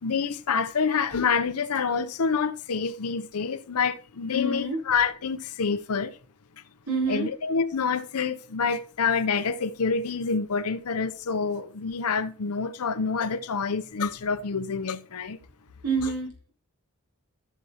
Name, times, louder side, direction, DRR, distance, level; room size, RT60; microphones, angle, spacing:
voice 1, 0.0-6.2 7.1-15.4, left 5 dB, 80° left, 0.7 m, -27 dB
voice 2, 4.3-4.8 6.9-7.3 15.8-16.5, right 3 dB, 80° right, 4.1 m, -27 dB
14.0 x 6.8 x 2.9 m
head